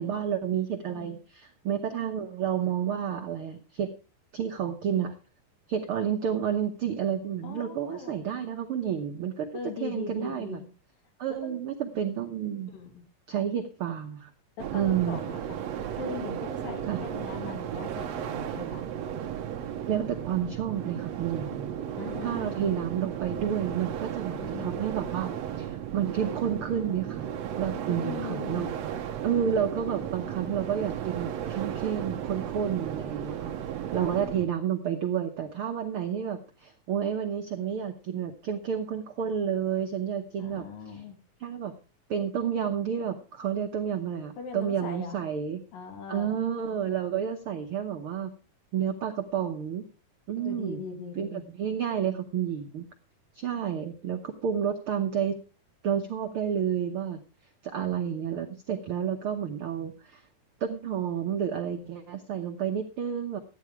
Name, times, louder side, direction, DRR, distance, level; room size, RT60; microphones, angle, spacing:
voice 1, 0.0-3.9 4.3-5.1 5.7-9.5 9.8-10.6 11.2-12.7 13.3-14.3 14.7-15.2 16.9-17.0 19.9-21.7 22.2-25.3 25.6-27.3 27.6-28.7 29.2-33.5 33.9-41.0 41.4-41.7 42.1-45.6 46.1-48.3 48.7-49.9 50.3-50.8 51.2-52.8 53.3-55.4 55.8-57.2 57.6-60.2 60.6-63.4, right 8 dB, 80° right, 5 dB, 1.2 m, -30 dB
voice 2, 0.9-1.2 7.4-8.5 9.5-10.7 11.4-11.6 12.7-13.0 14.6-15.6 15.9-18.9 22.0-22.8 24.4-24.9 27.8-28.7 34.0-34.1 40.4-41.2 44.4-45.2 45.7-46.4 50.4-51.4, left 5 dB, 80° left, 5 dB, 4.0 m, -40 dB
sound 1, 14.6-34.5, right 9 dB, 65° right, 1.9 m, -35 dB
13.5 x 9.4 x 4.6 m, 0.35 s
omnidirectional pair, 3.9 m